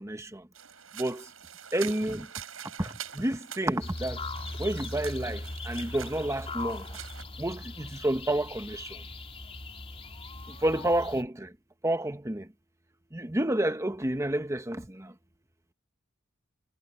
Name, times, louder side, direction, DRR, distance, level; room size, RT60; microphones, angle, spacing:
sound 1, 0.5-7.2, right 9 dB, 85° right, 7.3 m, -45 dB
voice 1, 1.7-2.2 3.2-4.1 4.6-5.4 5.7-6.8 7.4-7.6 8.0-8.4 10.6-11.3 11.8-12.4 13.3-14.8, right 1 dB, 15° right, 1.2 m, -28 dB
sound 2, 3.8-11.2, left 2 dB, 30° left, 3.7 m, -39 dB
head